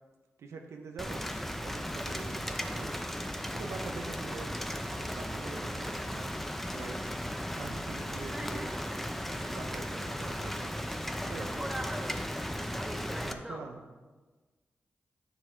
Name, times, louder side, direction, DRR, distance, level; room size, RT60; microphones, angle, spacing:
voice 1, 0.4-1.2 1.6-2.9 3.5-4.6 4.9-6.3 6.7-7.0 7.5-8.7 9.3-10.8 11.3-11.8 13.2-13.9, right 4 dB, 90° right, 3 dB, 0.8 m, -44 dB
Rain, 1.0-13.3, equal, 5° left, 0.8 m, -36 dB
voice 2, 8.3-8.7 9.1-9.2 9.5-9.6 11.1-13.6, right 1 dB, 10° right, 1 dB, 2.2 m, -42 dB
9.6 x 6.2 x 4.6 m, 1.3 s
cardioid pair, 40°, 5 cm